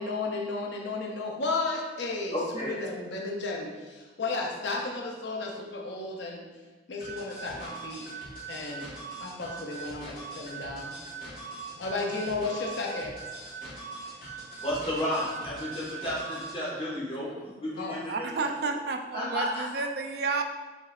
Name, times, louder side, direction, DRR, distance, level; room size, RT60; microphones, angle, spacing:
voice 1, 0.0-6.5 6.9-8.2 8.5-8.9 9.2-11.0 11.8-13.1 17.8-18.0, left 3 dB, 75° left, 0 dB, 0.6 m, -33 dB
voice 2, 2.3-2.8 14.6-18.5 19.1-19.8, equal, 30° left, -7 dB, 1.5 m, -32 dB
sound 1, 7.0-16.6, right 4 dB, 50° left, 1.4 m, -41 dB
voice 3, 14.1-14.6 18.1-20.4, right 4 dB, 55° right, 5 dB, 0.3 m, -32 dB
5.2 x 3.9 x 2.4 m, 1.2 s
head